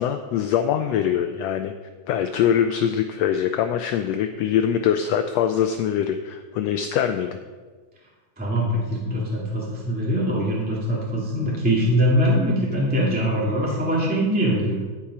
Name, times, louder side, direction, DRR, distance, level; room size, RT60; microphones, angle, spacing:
voice 1, 0.0-1.7 2.1-7.4, left 9 dB, 85° left, 7 dB, 1.5 m, -23 dB
voice 2, 8.4-14.8, equal, 5° right, -5 dB, 1.5 m, -22 dB
10.5 x 8.5 x 4.9 m, 1.4 s
omnidirectional pair, 3.5 m